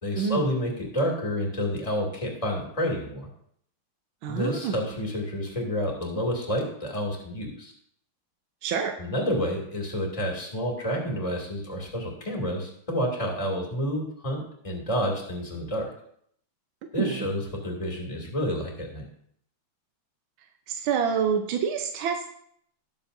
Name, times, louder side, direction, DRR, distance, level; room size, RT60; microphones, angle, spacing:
voice 1, 0.0-3.3 4.3-7.7 9.0-15.9 16.9-19.1, equal, 15° left, -1 dB, 2.3 m, -29 dB
voice 2, 4.2-4.8 8.6-8.9 17.0-17.3 20.7-22.3, right 7 dB, 70° right, 4 dB, 1.5 m, -27 dB
19.5 x 6.9 x 2.7 m, 0.67 s
omnidirectional pair, 2.4 m